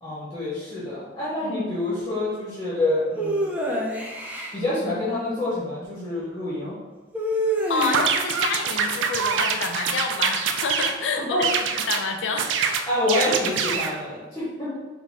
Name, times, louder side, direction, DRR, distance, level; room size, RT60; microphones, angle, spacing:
voice 1, 0.0-3.5 4.5-6.8 11.3-11.5 12.8-14.7, left 1 dB, 15° left, -9 dB, 0.8 m, -27 dB
sound 1, 3.2-4.5 7.1-8.3, right 1 dB, 10° right, 0.4 m, -26 dB
voice 2, 7.7-12.5, left 4 dB, 80° left, 4 dB, 0.4 m, -28 dB
sound 2, 7.8-11.0 11.4-12.0 12.4-14.0, right 6 dB, 80° right, 0.3 m, -25 dB
3.4 x 2.1 x 4.1 m, 1.2 s
head